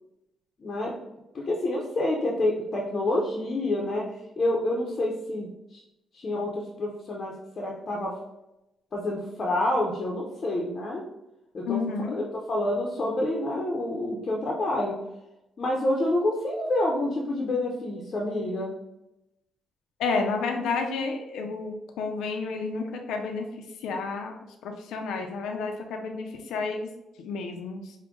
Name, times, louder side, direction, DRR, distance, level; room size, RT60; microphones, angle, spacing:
voice 1, 0.6-0.9 1.3-4.0 4.4-5.8 6.1-8.1 8.9-11.0 11.5-12.2 12.5-15.0 15.6-18.7, left 1 dB, 45° left, -2 dB, 0.7 m, -28 dB
voice 2, 11.7-12.2 20.0-23.5 23.8-24.3 24.6-26.9 27.2-27.9, left 4 dB, 85° left, 3 dB, 0.5 m, -30 dB
4.9 x 2.2 x 3.6 m, 0.91 s
cardioid pair, 90°, 0 cm